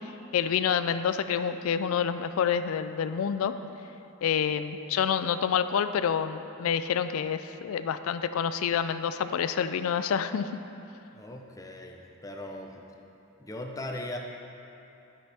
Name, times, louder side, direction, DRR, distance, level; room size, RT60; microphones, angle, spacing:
voice 1, 0.3-3.5 4.2-10.5, left 7 dB, 70° left, 11 dB, 0.3 m, -28 dB
voice 2, 11.1-12.8 13.4-14.2, left 1 dB, 15° left, 2 dB, 0.5 m, -39 dB
12.5 x 5.9 x 3.4 m, 2.8 s
head